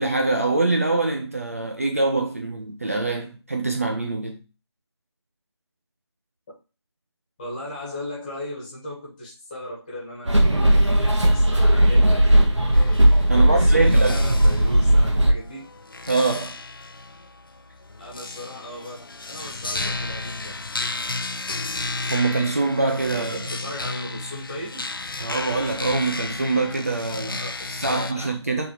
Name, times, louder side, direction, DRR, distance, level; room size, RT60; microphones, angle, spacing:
voice 1, 0.0-4.4 13.3-14.4 16.1-16.6 22.1-23.4 25.2-27.4 27.7-28.7, right 3 dB, 30° right, 0.5 m, -24 dB
voice 2, 7.4-12.5 13.3-15.7 18.0-20.6 23.1-24.9 27.2-28.3, left 1 dB, 15° left, 1.9 m, -37 dB
sound 1, 10.3-15.3, right 1 dB, 85° right, 1.7 m, -17 dB
sound 2, 12.7-28.1, left 3 dB, 50° left, 0.7 m, -33 dB
7.1 x 4.0 x 3.3 m
figure-of-eight pair, 170°, 15 cm